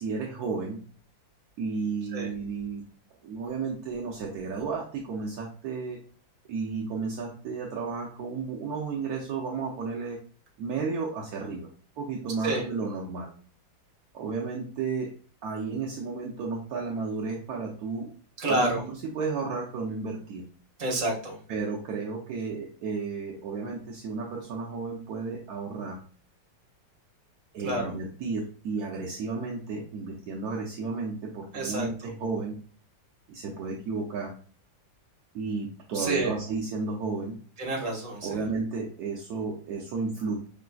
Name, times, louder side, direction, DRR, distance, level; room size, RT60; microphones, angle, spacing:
voice 1, 0.0-0.8 1.6-2.8 3.2-6.0 6.5-10.2 10.6-11.7 12.0-13.3 14.1-15.1 15.4-18.1 18.5-20.4 21.5-26.0 27.5-32.6 33.3-34.3 35.3-37.3 38.2-40.4, right 4 dB, 65° right, -2 dB, 1.0 m, -33 dB
voice 2, 18.4-18.8 20.8-21.4 27.6-27.9 31.5-31.9 35.9-36.3 37.6-38.4, right 2 dB, 50° right, -2 dB, 1.7 m, -28 dB
5.0 x 3.3 x 2.2 m, 0.42 s
omnidirectional pair, 2.0 m